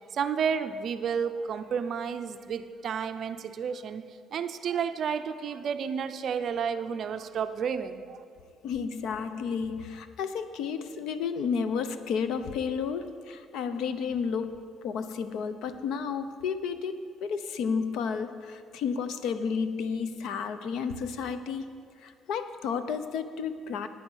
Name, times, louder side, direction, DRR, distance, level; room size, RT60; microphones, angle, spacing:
voice 1, 0.1-4.1 4.3-8.2, right 7 dB, 45° right, 10 dB, 0.5 m, -31 dB
voice 2, 8.6-21.7 22.0-23.9, left 6 dB, 65° left, 11 dB, 0.6 m, -32 dB
9.6 x 9.4 x 6.3 m, 2.1 s
cardioid pair, 170°, 0 cm